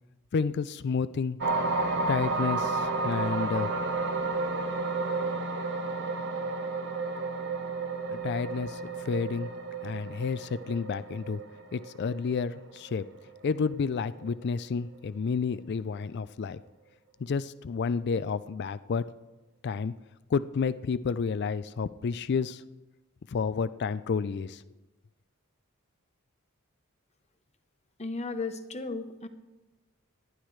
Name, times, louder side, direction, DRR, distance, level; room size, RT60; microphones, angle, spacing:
voice 1, 0.3-1.4 2.1-3.7 8.1-9.5 9.8-11.4 11.7-13.0 13.4-16.6 17.2-19.0 19.6-19.9 20.3-22.6 23.3-24.6, left 5 dB, 50° left, 15 dB, 0.4 m, -30 dB
sound 1, 1.4-13.8 14.2-14.4, right 3 dB, 55° right, 1.3 m, -32 dB
voice 2, 28.0-29.3, left 3 dB, 30° left, 8 dB, 0.9 m, -35 dB
19.0 x 11.5 x 3.2 m, 1.1 s
head